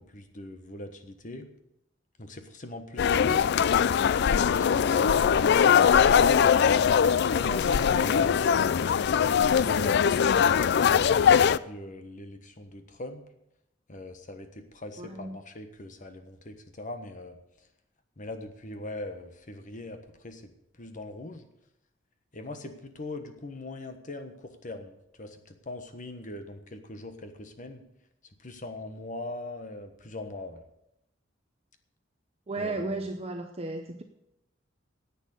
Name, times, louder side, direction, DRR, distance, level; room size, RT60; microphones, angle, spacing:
voice 1, 0.0-1.5 2.2-3.5 4.2-6.4 7.3-8.4 9.5-13.2 13.9-17.4 18.2-20.5 20.8-21.5 22.3-27.8 28.4-30.6 32.6-32.9, left 1 dB, 40° left, 7 dB, 1.3 m, -41 dB
sound 1, 3.0-11.6, left 7 dB, 60° left, 0.4 m, -21 dB
voice 2, 15.0-15.4 32.5-34.0, right 2 dB, 30° right, 5 dB, 0.7 m, -34 dB
10.5 x 8.4 x 8.2 m, 0.83 s
head